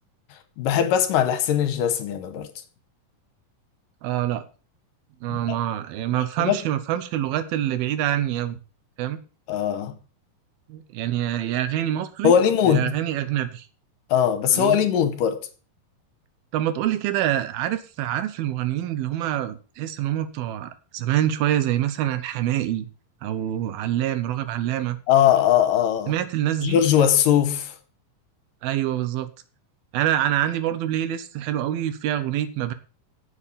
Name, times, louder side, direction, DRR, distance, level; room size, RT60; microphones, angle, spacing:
voice 1, 0.6-2.5 5.5-5.6 6.5-6.6 9.5-9.9 12.2-12.9 14.1-15.4 25.1-26.1 26.6-27.7, left 9 dB, 70° left, 2.4 m, -20 dB
voice 2, 4.0-4.4 5.2-8.6 9.0-9.2 10.7-12.3 12.6-13.7 14.5-14.8 16.5-22.9 23.2-25.0 26.1-26.8 28.6-29.3 29.9-32.7, right 12 dB, 80° right, 2.7 m, -26 dB
8.8 x 7.5 x 6.9 m
omnidirectional pair, 4.3 m